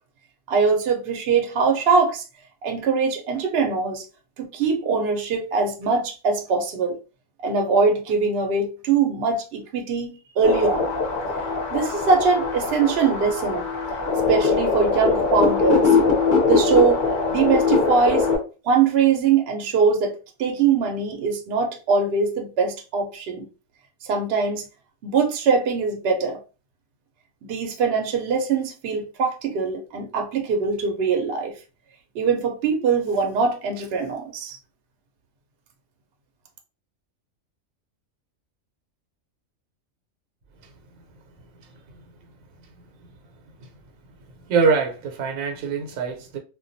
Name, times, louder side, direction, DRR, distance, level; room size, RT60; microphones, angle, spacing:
voice 1, 0.5-2.2 2.6-4.0 4.4-7.0 7.4-10.9 11.7-13.6 14.3-15.9 16.5-18.3 18.6-23.5 24.0-24.7 25.0-26.4 27.5-31.5 32.1-34.6, right 5 dB, 60° right, 0.7 m, -22 dB
sound 1, 10.4-18.4, left 4 dB, 50° left, 0.6 m, -21 dB
voice 2, 44.5-46.4, right 5 dB, 85° right, 1.0 m, -23 dB
2.3 x 2.2 x 2.5 m
omnidirectional pair, 1.4 m